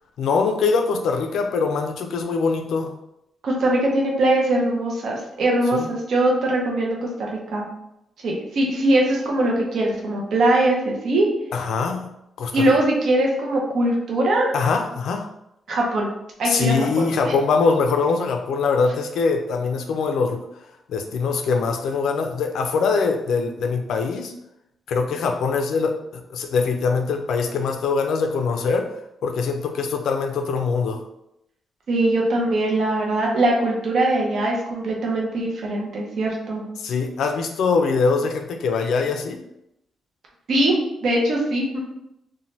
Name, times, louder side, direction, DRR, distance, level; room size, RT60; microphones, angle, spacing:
voice 1, 0.2-2.9 5.7-5.9 11.5-12.1 12.4-12.7 14.5-15.3 16.4-20.4 20.9-24.3 24.9-28.9 29.2-31.0 36.8-39.4, left 4 dB, 75° left, 4 dB, 0.4 m, -23 dB
voice 2, 3.4-7.6 8.2-11.3 12.5-14.5 15.7-16.1 16.4-17.3 31.9-36.6 40.5-40.8 41.0-41.8, right 1 dB, 55° right, -1 dB, 0.6 m, -21 dB
2.6 x 2.1 x 3.1 m, 0.83 s
wide cardioid pair, 165°, 0 cm